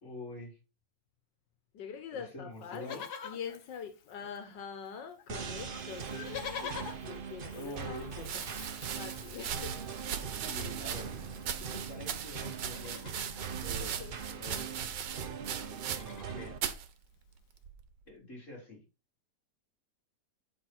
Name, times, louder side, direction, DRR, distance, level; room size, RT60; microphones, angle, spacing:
voice 1, 0.0-0.6 2.1-3.0 7.5-8.3 10.4-11.1 11.6-13.3 13.6-14.0 14.3-14.8 16.3-16.6 18.1-18.8, left 1 dB, 45° left, 4.1 m, -45 dB
voice 2, 1.7-8.1 8.9-9.8 13.8-14.2 14.6-14.7, left 7 dB, 90° left, 1.7 m, -44 dB
Livestock farm animals working animals, 2.6-4.6 4.9-5.0 5.2-12.1 12.6-13.5 14.7-14.8 15.0-15.2 15.6-16.6 17.2-17.3, left 7 dB, 70° left, 1.6 m, -47 dB
sound 1, 5.3-16.6, right 6 dB, 45° right, 0.8 m, -42 dB
sound 2, 8.2-16.3 16.6-16.9 17.6-18.0, right 8 dB, 85° right, 1.6 m, -39 dB
8.7 x 5.7 x 4.4 m
omnidirectional pair, 1.9 m